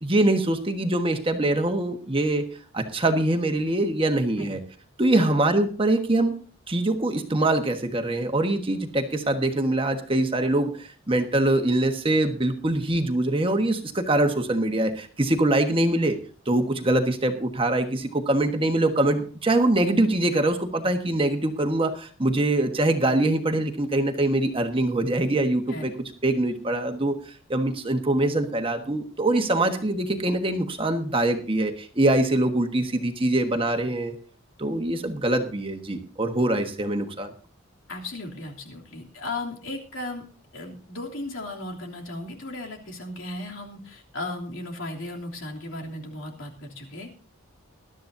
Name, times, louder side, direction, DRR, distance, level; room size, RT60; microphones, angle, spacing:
voice 1, 0.0-2.5 2.7-4.6 5.0-6.4 6.7-16.2 16.5-25.9 26.2-34.1 34.6-37.3, right 1 dB, 25° right, 5 dB, 1.4 m, -23 dB
voice 2, 37.9-40.2 40.5-47.2, left 2 dB, 70° left, 0 dB, 3.1 m, -36 dB
20.5 x 12.5 x 2.7 m, 0.40 s
head